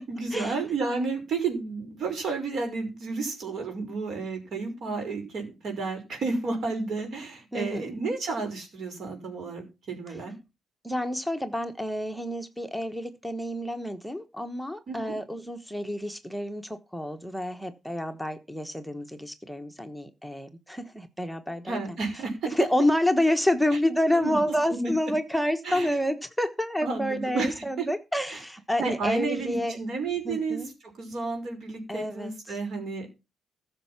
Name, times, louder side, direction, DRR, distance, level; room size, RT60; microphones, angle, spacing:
voice 1, 0.0-10.3 14.9-15.2 21.7-22.5 23.7-23.8 24.2-24.4 24.7-24.9 25.6-26.0 26.8-27.9 28.3-28.4 28.8-30.6 31.0-33.1, right 4 dB, 60° right, 5 dB, 5.5 m, -31 dB
voice 2, 7.5-7.9 10.8-21.8 22.4-29.8 30.2-30.7 31.9-32.6, left 1 dB, ahead, 9 dB, 1.2 m, -28 dB
14.0 x 6.6 x 5.9 m, 0.28 s
cardioid pair, 90°, 0 cm